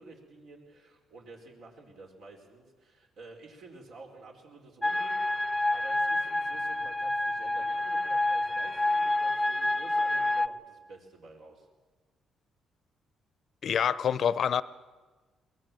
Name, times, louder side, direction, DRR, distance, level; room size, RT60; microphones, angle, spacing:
voice 1, 0.0-11.7, right 3 dB, 75° right, 4.8 m, -50 dB
sound 1, 4.8-10.5, left 2 dB, 15° left, 0.7 m, -28 dB
voice 2, 13.6-14.6, left 8 dB, 60° left, 0.7 m, -26 dB
23.0 x 19.5 x 7.6 m
cardioid pair, 90°, 0 cm